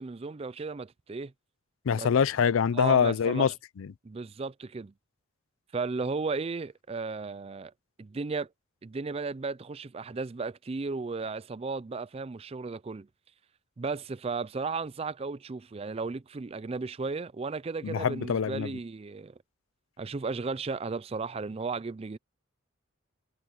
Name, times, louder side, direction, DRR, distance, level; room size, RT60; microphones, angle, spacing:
voice 1, 0.0-1.3 1.9-2.1 2.7-3.5 4.0-4.9 5.7-7.7 8.0-8.5 8.8-13.1 13.8-19.3 20.0-22.2, right 4 dB, 30° right, 0.4 m, -35 dB
voice 2, 1.9-3.5 3.8-3.9 17.8-18.7, left 7 dB, 80° left, 0.4 m, -24 dB
head